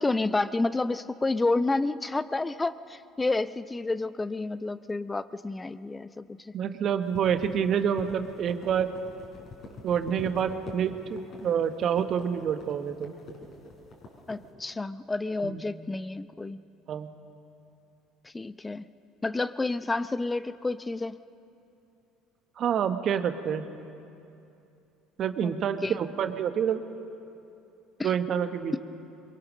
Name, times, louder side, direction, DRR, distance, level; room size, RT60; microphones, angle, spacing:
voice 1, 0.0-6.5 14.3-16.6 18.2-18.8 19.2-21.2 25.4-25.5 25.8-26.0 28.0-28.1 28.7-28.8, left 2 dB, 20° left, 14 dB, 0.6 m, -30 dB
voice 2, 6.5-8.9 9.8-13.2 15.4-15.6 16.9-17.1 22.6-23.7 25.2-26.8 28.0-28.8, right 8 dB, 50° right, 9 dB, 1.3 m, -27 dB
sound 1, 7.0-14.4, left 3 dB, 50° left, 5.2 m, -45 dB
23.5 x 23.0 x 6.4 m, 2.7 s
hypercardioid pair, 65°, 0 cm